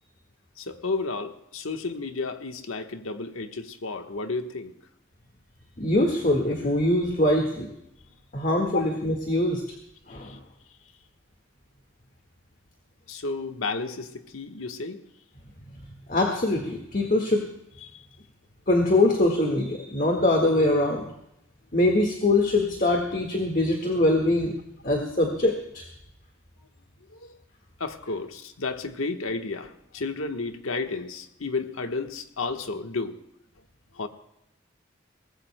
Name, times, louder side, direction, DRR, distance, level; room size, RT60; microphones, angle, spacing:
voice 1, 0.6-4.7 8.7-8.8 10.1-10.4 13.1-15.0 17.8-18.0 27.1-27.4 27.8-33.2 33.9-34.1, left 3 dB, 85° left, 1.3 m, -32 dB
voice 2, 5.8-7.7 8.3-9.6 10.1-10.4 16.1-17.4 18.7-21.1 21.7-24.5 24.8-25.8, left 1 dB, 40° left, 1.7 m, -23 dB
23.5 x 19.5 x 2.2 m
head